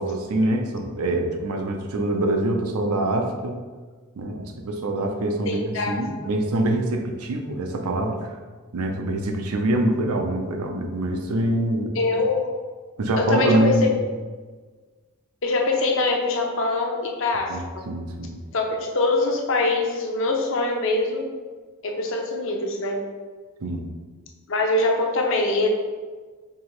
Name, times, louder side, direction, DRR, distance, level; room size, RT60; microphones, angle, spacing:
voice 1, 0.0-3.6 4.2-8.4 8.7-11.9 13.0-13.9 17.5-18.4 23.6-23.9, right 1 dB, 85° right, 3 dB, 0.6 m, -25 dB
voice 2, 5.4-6.1 11.9-12.5 13.1-13.9 15.4-17.8 18.5-21.3 21.8-23.0 24.5-25.7, left 2 dB, 60° left, 1 dB, 0.6 m, -23 dB
4.8 x 2.8 x 3.0 m, 1.4 s
head